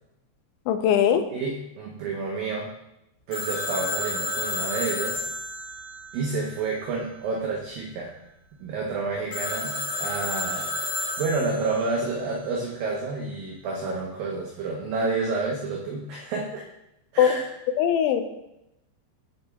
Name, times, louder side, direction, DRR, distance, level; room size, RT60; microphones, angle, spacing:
voice 1, 0.7-1.3 17.2-17.3 17.8-18.2, left 9 dB, 90° left, 8 dB, 3.0 m, -20 dB
voice 2, 1.3-2.7 3.3-5.3 6.1-8.2 8.6-16.6 17.1-17.4, right 3 dB, 85° right, -1 dB, 2.0 m, -29 dB
Telephone, 3.3-6.9 9.3-11.8, left 2 dB, 70° left, 1.4 m, -31 dB
7.2 x 6.7 x 3.4 m, 0.88 s
omnidirectional pair, 5.2 m